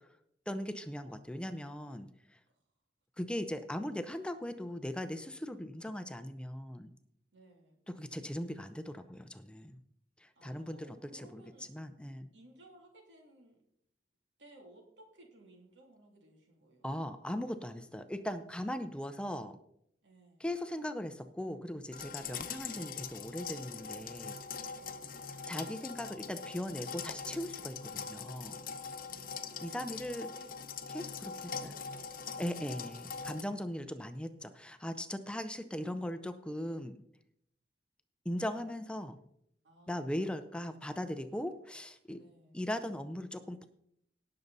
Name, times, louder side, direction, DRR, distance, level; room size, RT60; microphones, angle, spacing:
voice 1, 0.5-2.4 3.2-6.9 7.9-9.8 10.2-10.8 11.1-11.4 11.7-12.3 16.8-19.6 20.4-24.4 25.5-28.6 29.6-30.3 30.9-31.7 32.4-37.0 38.2-39.2 39.9-42.2 42.5-43.7, left 1 dB, 5° left, 10 dB, 0.5 m, -39 dB
voice 2, 7.3-7.8 10.3-11.7 12.3-13.6 14.4-16.9 20.0-20.4 24.8-25.2 29.0-30.5 31.2-33.0 39.6-40.1 42.2-42.7, right 1 dB, 80° right, 1 dB, 2.9 m, -60 dB
sound 1, 21.9-33.4, left 6 dB, 50° left, 0.8 m, -42 dB
18.0 x 6.7 x 4.0 m, 0.72 s
head